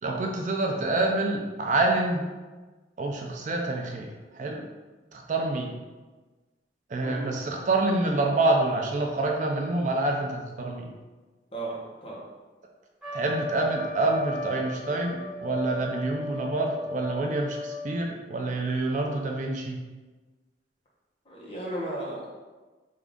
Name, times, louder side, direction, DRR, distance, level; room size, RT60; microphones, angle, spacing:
voice 1, 0.0-2.3 3.0-4.7 5.1-5.7 6.9-10.9 13.1-19.8, right 2 dB, 45° right, 1 dB, 0.4 m, -27 dB
voice 2, 7.0-7.4 11.5-12.2 21.2-22.3, right 1 dB, 30° left, -5 dB, 0.8 m, -35 dB
Trumpet, 13.0-18.0, left 2 dB, 5° right, 1.2 m, -36 dB
3.6 x 2.4 x 3.5 m, 1.3 s
head